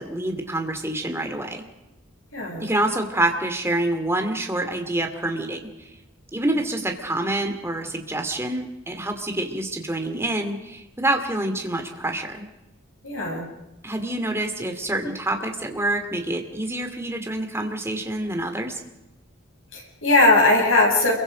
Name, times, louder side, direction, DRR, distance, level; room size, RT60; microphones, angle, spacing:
voice 1, 0.0-1.6 2.6-5.9 6.3-12.5 13.8-18.8, right 1 dB, 10° right, 4 dB, 2.6 m, -27 dB
voice 2, 2.3-2.7 6.4-6.6 13.0-13.5 19.7-21.1, left 2 dB, 65° left, 0 dB, 7.8 m, -19 dB
28.5 x 23.0 x 5.2 m, 0.97 s
head